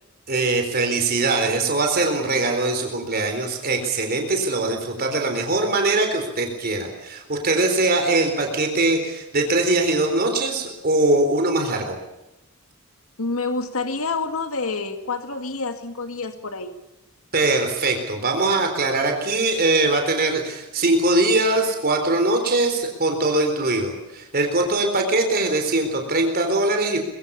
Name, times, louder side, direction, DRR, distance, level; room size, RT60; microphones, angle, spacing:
voice 1, 0.3-12.0 17.3-27.0, right 2 dB, 45° right, 4 dB, 3.9 m, -22 dB
voice 2, 13.2-16.7, left 3 dB, 65° left, 7 dB, 2.2 m, -28 dB
24.5 x 22.0 x 6.9 m, 0.95 s
head